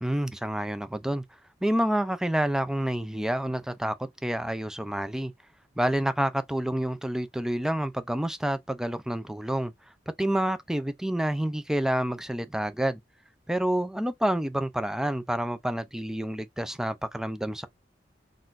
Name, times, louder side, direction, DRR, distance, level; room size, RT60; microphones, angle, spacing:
voice 1, 0.0-1.2 1.6-5.3 5.8-9.7 10.2-13.0 13.5-17.7, right 1 dB, 5° right, 0.3 m, -28 dB
3.8 x 2.4 x 2.5 m
head